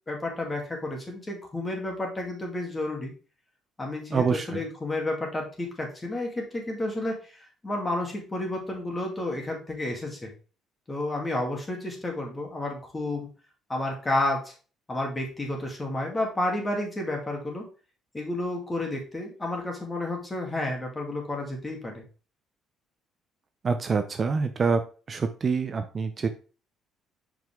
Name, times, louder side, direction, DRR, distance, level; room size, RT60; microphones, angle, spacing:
voice 1, 0.1-3.1 3.8-10.3 10.9-13.3 13.7-14.5 14.9-17.6 18.1-22.0, left 1 dB, 20° left, 1 dB, 2.3 m, -31 dB
voice 2, 4.1-4.5 23.6-24.8 25.1-26.3, right 5 dB, 35° right, 8 dB, 0.6 m, -26 dB
6.1 x 5.3 x 3.7 m, 0.36 s
cardioid pair, 120°, 0 cm